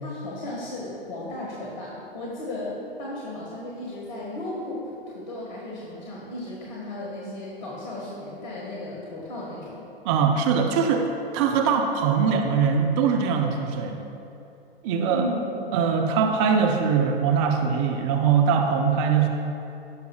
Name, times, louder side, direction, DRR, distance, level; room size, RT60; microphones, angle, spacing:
voice 1, 0.0-9.9 15.1-15.6, left 1 dB, 45° left, -4 dB, 1.7 m, -35 dB
voice 2, 10.0-11.1 11.3-14.0 14.8-15.3 15.7-19.3, right 6 dB, 30° right, 3 dB, 0.6 m, -22 dB
16.0 x 6.8 x 2.4 m, 2.8 s
figure-of-eight pair, 115°, 30 cm